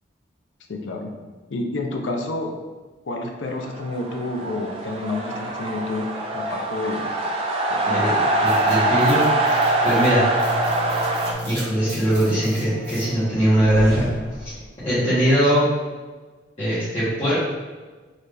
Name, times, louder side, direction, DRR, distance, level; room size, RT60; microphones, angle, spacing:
voice 1, 0.7-1.1 1.5-2.5 3.0-6.1 6.3-7.1 7.7-8.3, left 2 dB, 85° left, 2 dB, 0.6 m, -29 dB
sound 1, 3.6-11.3, right 2 dB, 30° right, 0.4 m, -23 dB
voice 2, 7.8-9.2 9.8-10.2 11.4-14.1 14.4-14.5 14.8-15.6 16.6-17.3, equal, 35° left, -14 dB, 1.2 m, -21 dB
sound 2, 8.5-14.8, equal, 55° right, 1.1 m, -34 dB
4.0 x 2.7 x 3.3 m, 1.3 s
head